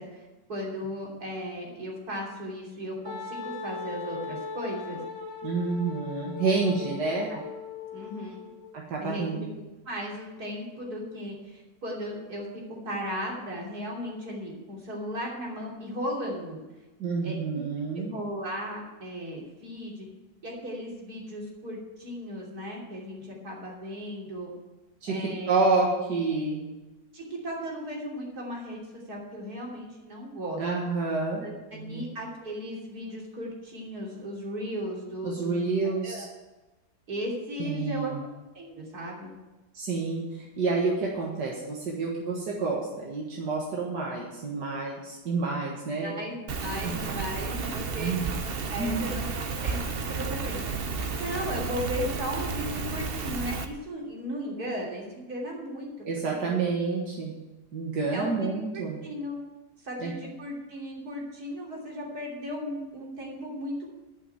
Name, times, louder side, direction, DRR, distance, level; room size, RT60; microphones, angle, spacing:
voice 1, 0.0-5.0 7.3-7.4 7.9-8.4 9.0-9.5 9.9-12.5 12.8-16.6 17.2-17.4 18.0-20.1 20.4-24.5 25.1-25.6 27.1-30.6 31.4-35.7 36.0-36.2 37.1-38.1 38.5-39.3 46.0-48.1 48.7-50.7 51.2-55.9 58.1-59.4 59.8-63.9, equal, 65° right, -3 dB, 3.7 m, -36 dB
Wind instrument woodwind instrument, 3.0-8.7, left 4 dB, 10° left, 2.7 m, -39 dB
voice 2, 5.4-7.3 8.7-9.4 17.0-18.1 25.0-25.2 25.5-26.6 30.6-31.5 31.7-32.0 35.2-36.3 37.6-38.2 39.7-46.1 46.8-46.9 47.5-47.7 48.0-48.3 48.8-49.1 56.0-57.3 57.7-59.0 60.0-60.1, right 4 dB, 90° right, -3 dB, 2.2 m, -29 dB
Rain, 46.5-53.6, right 4 dB, 45° right, 0.8 m, -32 dB
12.0 x 5.9 x 9.2 m, 1.1 s
omnidirectional pair, 1.8 m